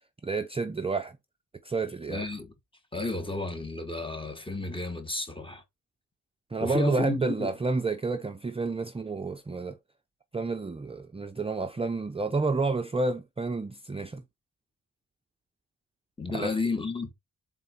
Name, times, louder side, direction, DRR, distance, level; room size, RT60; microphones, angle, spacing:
voice 1, 0.2-1.2 1.6-2.2 6.5-9.8 10.3-14.2 16.3-16.6, right 3 dB, 15° right, 0.5 m, -30 dB
voice 2, 2.1-2.5 2.9-5.6 6.6-7.5 16.2-17.1, left 3 dB, 15° left, 1.3 m, -32 dB
7.6 x 3.8 x 4.4 m
wide cardioid pair, 175°, 34 cm